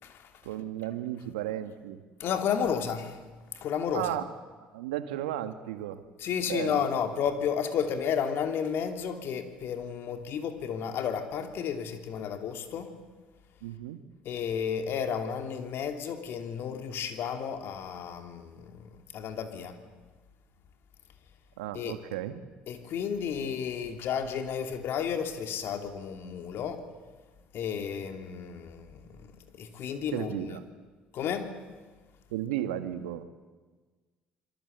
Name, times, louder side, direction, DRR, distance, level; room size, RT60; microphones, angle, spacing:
voice 1, 0.4-2.0 3.9-4.2 4.7-6.0 6.4-6.9 13.6-14.0 21.6-22.4 30.1-30.6 32.3-33.2, right 12 dB, 85° right, 10 dB, 1.5 m, -34 dB
voice 2, 2.2-3.2 3.5-4.2 6.2-12.9 14.2-19.8 21.7-22.0 22.7-26.8 27.5-30.6 31.1-31.5, left 7 dB, 60° left, 6 dB, 3.0 m, -32 dB
27.0 x 22.5 x 8.1 m, 1.4 s
hypercardioid pair, 65°, 4 cm